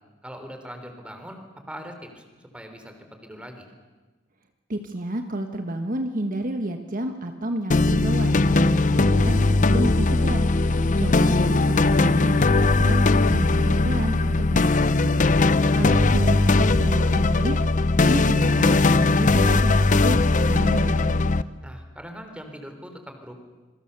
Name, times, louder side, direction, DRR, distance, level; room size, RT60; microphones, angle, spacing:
voice 1, 0.2-1.4 1.7-2.2 2.5-3.0 3.2-3.7 10.7-11.1 21.6-23.3, equal, 5° right, 5 dB, 3.5 m, -41 dB
voice 2, 4.7-10.5 11.0-13.0 13.3-15.2 15.7-17.6 18.0-20.2 20.5-21.2, right 1 dB, 45° right, 5 dB, 1.4 m, -30 dB
sound 1, 7.7-21.4, left 2 dB, 40° left, 0.7 m, -19 dB
27.0 x 23.0 x 6.9 m, 1.3 s
head